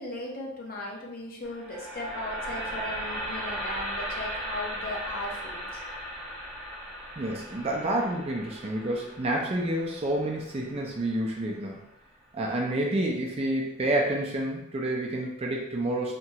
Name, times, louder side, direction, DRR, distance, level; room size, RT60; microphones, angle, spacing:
voice 1, 0.0-5.8, left 1 dB, 45° left, -1 dB, 0.6 m, -37 dB
sound 1, 1.4-11.6, equal, 5° right, 0.9 m, -37 dB
voice 2, 7.2-11.8 12.3-16.2, right 1 dB, 30° right, -1 dB, 0.4 m, -29 dB
2.9 x 2.3 x 2.8 m, 0.81 s
head